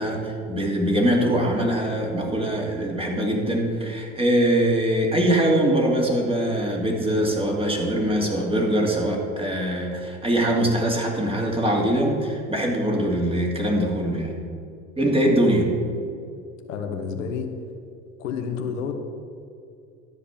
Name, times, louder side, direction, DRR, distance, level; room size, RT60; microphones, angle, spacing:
voice 1, 0.0-14.3 15.0-15.8, right 1 dB, 15° right, -1 dB, 2.8 m, -22 dB
voice 2, 16.7-17.5 18.2-18.9, left 6 dB, 85° left, 5 dB, 1.3 m, -29 dB
12.5 x 5.2 x 8.6 m, 2.4 s
hypercardioid pair, 85°, 38 cm